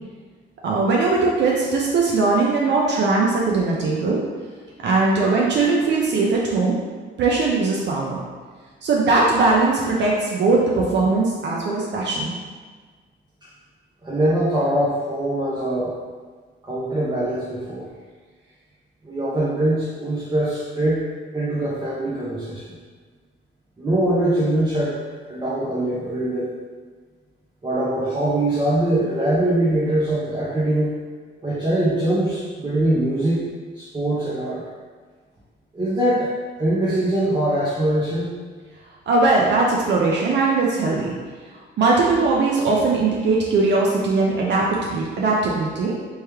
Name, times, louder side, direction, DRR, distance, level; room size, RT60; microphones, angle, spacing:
voice 1, 0.6-4.2 4.8-6.8 7.2-8.2 8.8-12.3 39.1-41.1 41.8-45.9, right 3 dB, 65° right, -3 dB, 0.6 m, -20 dB
voice 2, 14.0-16.0 16.6-17.9 19.0-21.0 21.3-22.7 23.8-25.0 25.3-26.5 27.6-31.0 31.4-33.4 33.7-34.6 35.7-38.3, right 1 dB, 20° right, -8 dB, 0.9 m, -22 dB
3.1 x 3.1 x 3.4 m, 1.5 s
cardioid pair, 90°, 20 cm